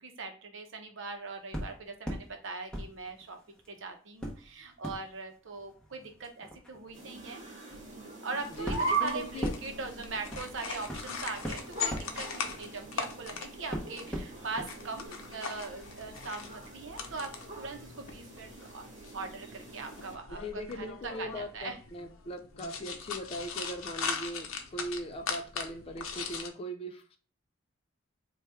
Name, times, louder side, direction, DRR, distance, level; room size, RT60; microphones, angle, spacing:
voice 1, 0.0-3.4 3.7-7.4 7.7-21.8, right 3 dB, 65° right, 5 dB, 0.7 m, -41 dB
sound 1, 1.5-2.3 2.7-3.7 4.2-13.3 13.7-14.7 15.0-15.1, equal, 5° left, 0.7 m, -40 dB
sound 2, 6.9-20.1, right 4 dB, 35° right, 1.3 m, -41 dB
sound 3, 8.4-26.5, left 5 dB, 85° left, 0.6 m, -41 dB
voice 2, 8.6-9.5 20.4-27.2, equal, 30° left, 5 dB, 0.4 m, -40 dB
4.2 x 2.3 x 3.3 m, 0.40 s
head